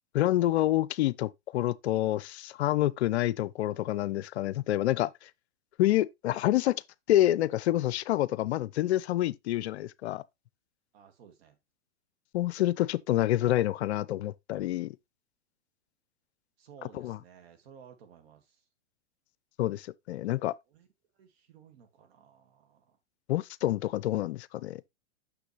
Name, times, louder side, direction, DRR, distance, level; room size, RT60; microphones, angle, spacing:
voice 1, 0.1-5.3 5.8-6.8 7.1-10.2 12.3-14.9 16.9-17.2 19.6-20.5 23.3-24.8, left 14 dB, 65° left, 0.5 m, -27 dB
voice 2, 10.9-11.6 16.6-18.6 20.7-20.9 21.1-23.0, right 7 dB, 60° right, 1.8 m, -55 dB
6.1 x 5.9 x 3.1 m
hypercardioid pair, 115°, 35 cm